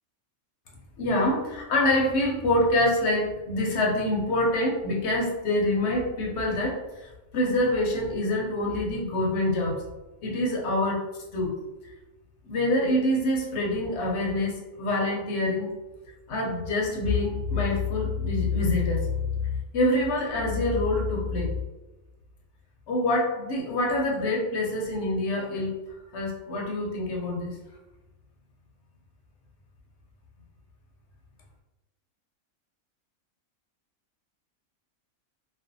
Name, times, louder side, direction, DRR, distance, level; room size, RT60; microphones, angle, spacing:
voice 1, 1.0-9.8 10.2-11.0 11.3-11.5 12.4-15.7 16.3-19.1 19.7-21.6 22.9-25.7 26.1-27.6, left 1 dB, 65° left, -1 dB, 0.7 m, -26 dB
2.5 x 2.1 x 2.5 m, 1.1 s
omnidirectional pair, 1.5 m